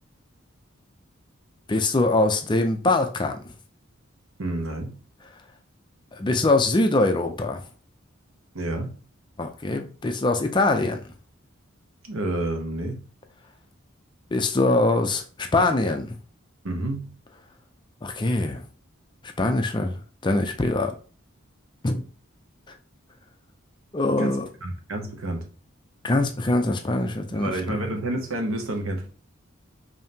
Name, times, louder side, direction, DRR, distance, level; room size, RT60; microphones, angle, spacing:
voice 1, 1.7-3.4 6.1-7.6 9.4-11.0 14.3-16.2 18.0-18.6 19.4-20.9 21.8-22.0 23.9-24.5 26.0-27.8, left 2 dB, 20° left, 0.4 m, -23 dB
voice 2, 4.4-5.0 8.5-9.0 12.1-13.0 16.6-17.1 24.2-25.5 27.3-29.1, right 1 dB, 90° right, 1.0 m, -29 dB
5.3 x 2.8 x 2.8 m
head